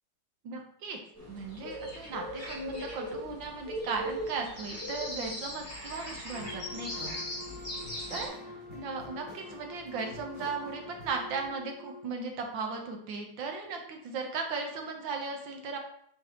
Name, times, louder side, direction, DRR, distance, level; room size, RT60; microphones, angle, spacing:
voice 1, 0.4-1.0 1.3-7.1 8.1-15.8, right 4 dB, 75° right, 3 dB, 1.7 m, -37 dB
sound 1, 1.1-8.3, equal, 5° left, 2.2 m, -39 dB
Wind instrument woodwind instrument, 6.3-12.1, left 3 dB, 45° right, 1.5 m, -47 dB
sound 2, 6.4-11.5, left 2 dB, 80° left, 3.4 m, -51 dB
8.2 x 4.7 x 2.9 m, 0.69 s
omnidirectional pair, 2.1 m